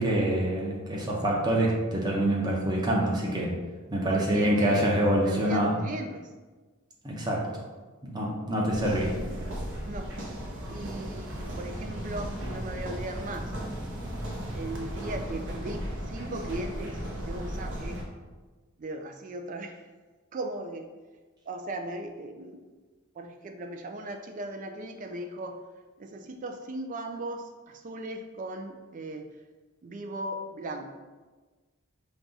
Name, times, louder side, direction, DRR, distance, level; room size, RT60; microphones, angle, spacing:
voice 1, 0.0-3.5 3.9-5.7 7.0-7.5 8.0-9.2, right 1 dB, 20° right, -3 dB, 0.8 m, -26 dB
voice 2, 4.0-4.9 5.2-6.3 9.8-10.1 10.7-13.5 14.5-17.0 17.3-18.0 18.8-19.8 20.3-20.9 21.5-22.6 23.2-25.6 26.0-29.3 29.8-30.9, right 2 dB, 35° right, 5 dB, 0.3 m, -37 dB
sound 1, 8.7-18.0, equal, 55° right, 0.9 m, -36 dB
5.2 x 2.3 x 3.9 m, 1.3 s
head